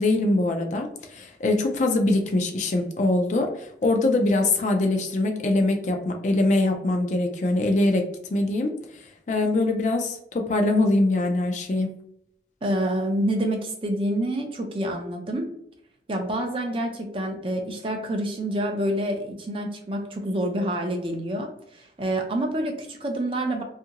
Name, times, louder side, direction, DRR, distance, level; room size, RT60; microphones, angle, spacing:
voice 1, 0.0-11.9, left 2 dB, 40° left, 3 dB, 0.4 m, -23 dB
voice 2, 12.6-15.5 16.1-23.6, right 1 dB, 30° right, 3 dB, 0.4 m, -27 dB
2.7 x 2.5 x 2.8 m, 0.71 s
head